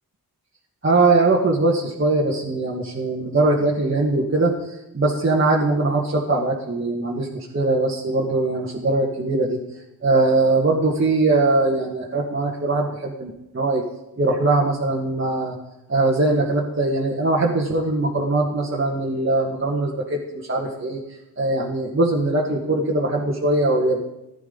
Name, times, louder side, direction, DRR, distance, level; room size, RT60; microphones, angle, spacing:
voice 1, 0.8-9.6 10.0-13.8 14.2-15.6 15.9-21.0 21.4-24.0, right 2 dB, 30° right, -4 dB, 1.7 m, -21 dB
15.0 x 10.5 x 3.9 m, 0.93 s
cardioid pair, 80°, 39 cm